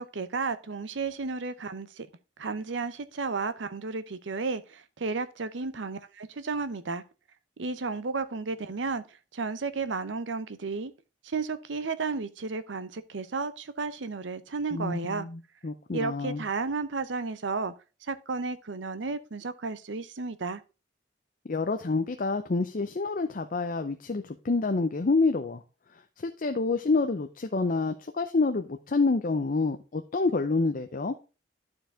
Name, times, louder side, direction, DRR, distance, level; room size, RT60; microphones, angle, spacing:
voice 1, 0.0-2.1 2.4-7.0 7.6-9.0 9.3-10.9 11.2-15.3 15.9-17.7 18.0-20.6, right 4 dB, 75° right, 0.7 m, -33 dB
voice 2, 14.7-16.4 21.5-25.6 26.2-31.1, left 3 dB, 45° left, 0.6 m, -28 dB
11.5 x 4.7 x 3.6 m
head